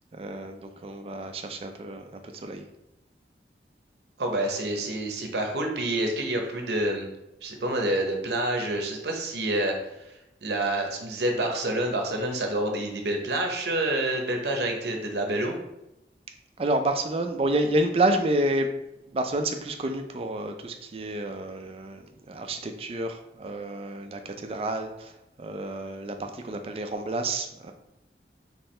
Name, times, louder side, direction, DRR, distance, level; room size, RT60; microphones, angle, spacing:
voice 1, 0.1-2.6 16.6-18.7 19.1-27.7, right 1 dB, 35° right, 6 dB, 0.4 m, -29 dB
voice 2, 4.2-7.1 7.4-10.1 10.4-15.6, right 1 dB, 70° right, 3 dB, 0.7 m, -28 dB
4.4 x 3.2 x 3.2 m, 0.90 s
head